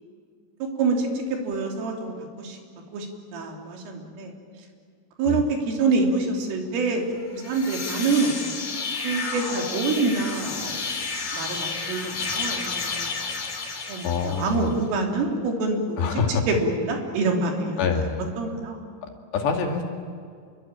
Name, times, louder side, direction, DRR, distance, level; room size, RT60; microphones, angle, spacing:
voice 1, 0.8-2.6 2.9-3.1 3.3-4.3 5.2-7.0 7.3-10.8 11.3-13.1 13.9-17.8 18.4-18.8, right 3 dB, 75° right, 2 dB, 5.7 m, -26 dB
sound 1, 7.3-14.7, left 4 dB, 45° left, 5.4 m, -31 dB
voice 2, 14.0-14.7 16.0-16.5 17.8-18.2 19.0-19.8, left 5 dB, 60° left, 3 dB, 4.3 m, -26 dB
28.0 x 23.0 x 9.0 m, 2.2 s
omnidirectional pair, 5.9 m